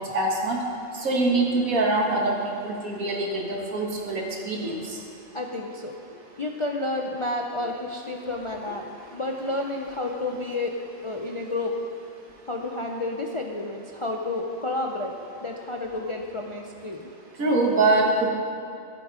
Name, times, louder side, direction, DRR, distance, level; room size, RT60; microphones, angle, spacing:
voice 1, 0.1-0.6 1.0-4.8 17.4-18.3, right 2 dB, 90° right, -1 dB, 2.1 m, -24 dB
voice 2, 5.3-5.9 6.4-8.9 9.1-10.8 11.0-11.7 12.5-15.1 15.4-17.1, left 2 dB, 40° left, 1 dB, 0.4 m, -30 dB
14.0 x 7.7 x 5.0 m, 2.5 s
omnidirectional pair, 1.4 m